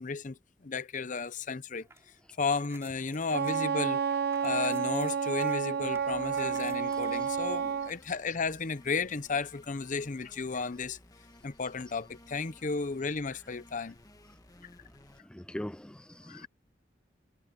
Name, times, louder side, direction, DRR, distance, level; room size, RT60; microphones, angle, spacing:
voice 1, 0.0-1.9 2.4-4.0 4.4-11.0 11.4-14.0 16.3-16.5, left 4 dB, 45° left, 0.7 m, -33 dB
sound 1, 1.8-7.9, right 2 dB, 15° right, 6.4 m, -56 dB
Wind instrument woodwind instrument, 3.3-7.9, right 7 dB, 60° right, 0.9 m, -30 dB
sound 2, 5.8-15.2, left 1 dB, 20° left, 1.7 m, -57 dB
voice 2, 15.2-16.5, left 1 dB, 5° left, 0.4 m, -41 dB
head